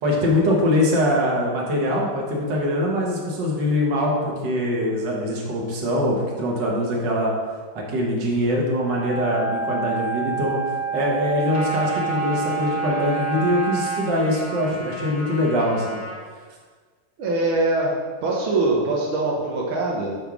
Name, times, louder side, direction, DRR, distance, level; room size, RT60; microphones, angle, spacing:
voice 1, 0.0-7.3 7.8-10.6 10.9-16.0, left 1 dB, 60° right, -2 dB, 2.0 m, -23 dB
Wind instrument woodwind instrument, 8.7-14.0, right 5 dB, 50° left, 1.4 m, -28 dB
Trumpet, 11.5-16.2, equal, 25° left, 1.2 m, -35 dB
voice 2, 17.2-17.9 18.2-20.2, right 2 dB, 85° right, -2 dB, 1.8 m, -22 dB
8.9 x 3.6 x 6.0 m, 1.5 s
omnidirectional pair, 2.2 m